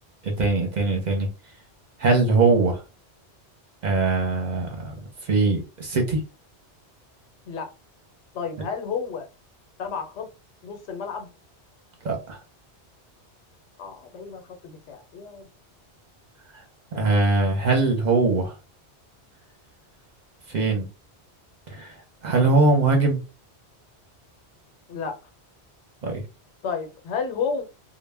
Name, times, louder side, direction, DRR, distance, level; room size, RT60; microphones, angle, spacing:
voice 1, 0.2-1.3 2.0-2.8 3.8-4.9 5.2-6.2 8.6-8.7 12.0-12.4 16.9-18.5 20.5-20.9 21.7-23.2 26.0-26.2, right 3 dB, 50° right, 0.6 m, -21 dB
voice 2, 8.3-9.3 9.8-10.3 10.6-11.3 13.8-15.5 16.9-17.2 24.9-25.2 26.6-27.6, left 5 dB, 90° left, 1.0 m, -31 dB
2.1 x 2.1 x 3.3 m
omnidirectional pair, 1.1 m